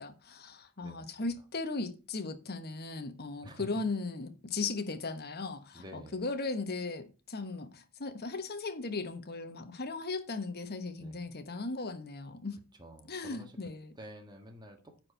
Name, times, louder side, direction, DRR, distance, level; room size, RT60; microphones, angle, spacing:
voice 1, 0.0-12.6 13.1-13.9, left 3 dB, 45° left, 1.2 m, -37 dB
voice 2, 5.7-6.2 11.0-11.2 12.8-13.5 14.0-15.1, equal, 20° right, 1.6 m, -49 dB
9.7 x 4.6 x 6.7 m
head